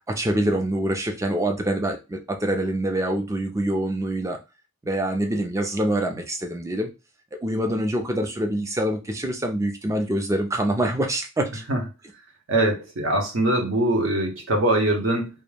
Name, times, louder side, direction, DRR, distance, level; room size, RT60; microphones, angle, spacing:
voice 1, 0.1-4.4 4.8-6.9 7.3-11.6, right 1 dB, 15° right, 4 dB, 0.3 m, -25 dB
voice 2, 12.5-15.3, right 1 dB, 60° right, 2 dB, 0.7 m, -22 dB
2.3 x 2.0 x 3.2 m, 0.28 s
head